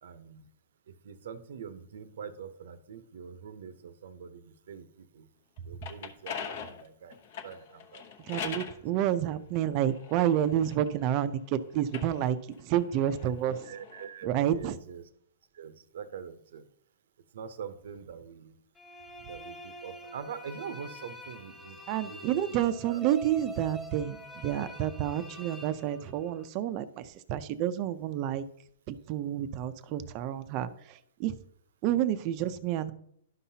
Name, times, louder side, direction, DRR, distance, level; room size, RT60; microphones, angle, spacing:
voice 1, 0.0-0.4 0.9-5.3 5.6-7.2 7.4-8.0 8.6-8.7 13.5-15.1 15.5-16.7 17.3-18.5 19.3-23.0 31.8-32.0, right 7 dB, 70° right, 12 dB, 0.7 m, -44 dB
sound 1, 5.6-8.8 9.5-11.2 11.8-14.1, left 6 dB, 50° left, 0.9 m, -42 dB
voice 2, 8.3-13.6 14.2-14.8 21.9-28.4 28.9-31.4 31.8-32.9, right 11 dB, 35° right, 12 dB, 0.5 m, -29 dB
sound 2, 18.8-26.5, equal, 10° left, 1.5 m, -46 dB
11.5 x 5.7 x 2.8 m, 0.68 s
hypercardioid pair, 155°, 0 cm